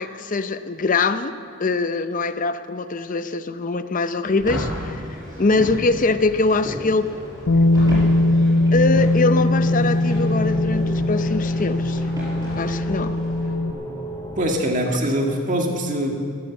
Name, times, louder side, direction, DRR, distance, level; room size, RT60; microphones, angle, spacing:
voice 1, 0.0-1.3 1.6-5.0 5.4-7.1 8.7-12.1 12.6-13.1, left 3 dB, 35° left, 11 dB, 0.6 m, -23 dB
sound 1, 4.2-14.5, equal, 15° left, 2.7 m, -35 dB
sound 2, 4.4-13.5, left 1 dB, 15° right, 5.1 m, -34 dB
Bass guitar, 7.5-13.7, left 2 dB, 75° left, 0.8 m, -20 dB
voice 2, 14.4-16.2, equal, 35° right, 1 dB, 1.9 m, -23 dB
14.0 x 13.5 x 7.0 m, 2.4 s
head